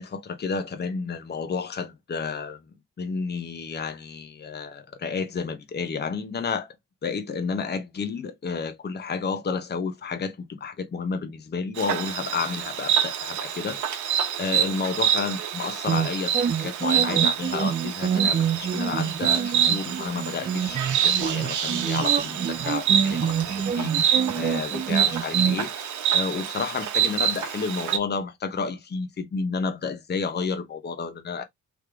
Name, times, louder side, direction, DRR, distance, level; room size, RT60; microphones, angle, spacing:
voice 1, 0.0-2.6 3.0-6.7 7.0-31.4, left 5 dB, 35° left, 0.9 m, -31 dB
Insect, 11.8-28.0, right 9 dB, 75° right, 1.0 m, -26 dB
sound 1, 15.9-25.6, right 7 dB, 30° right, 0.5 m, -27 dB
3.5 x 3.1 x 4.9 m
cardioid pair, 90°, 30 cm